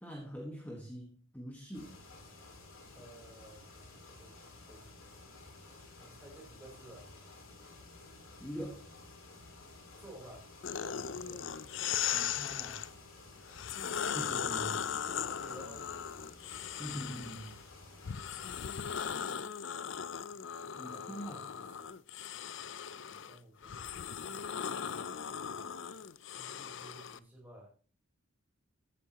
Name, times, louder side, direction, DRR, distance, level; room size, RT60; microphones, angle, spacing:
voice 1, 0.0-2.0 8.4-8.9 12.1-12.8 14.1-14.8 16.8-17.6 20.8-21.6, equal, 10° left, -1 dB, 1.5 m, -43 dB
sound 1, 1.7-18.9, left 2 dB, 80° left, 4.4 m, -54 dB
voice 2, 2.9-5.0 6.0-7.1 10.0-10.5 10.7-11.5 14.3-15.9 20.6-22.0 22.9-24.6 26.3-27.7, right 1 dB, 10° right, -3 dB, 4.2 m, -54 dB
sound 2, 10.6-12.9 13.5-17.6 18.0-27.2, left 8 dB, 65° left, 0.5 m, -38 dB
14.5 x 8.3 x 3.0 m, 0.41 s
head